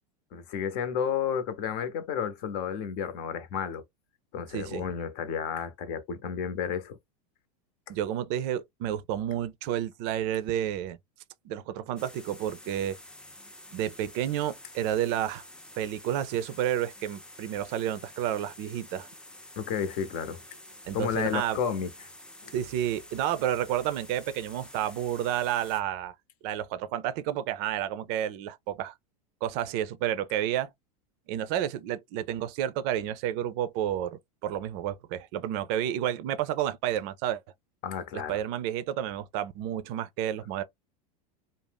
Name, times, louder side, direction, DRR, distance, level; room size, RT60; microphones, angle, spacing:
voice 1, 0.3-3.8 4.3-7.0 19.6-20.4 20.9-22.1 22.4-22.5 37.8-38.4, left 7 dB, 55° left, 0.7 m, -32 dB
voice 2, 4.5-4.8 7.9-11.0 11.4-13.0 13.7-15.4 15.8-19.1 20.9-21.6 22.5-26.1 26.4-28.9 29.4-30.7 31.3-37.4 38.1-40.6, right 11 dB, 55° right, 0.5 m, -30 dB
sound 1, 12.0-25.8, left 1 dB, 5° left, 0.5 m, -49 dB
2.5 x 2.0 x 3.4 m
hypercardioid pair, 110°, 20 cm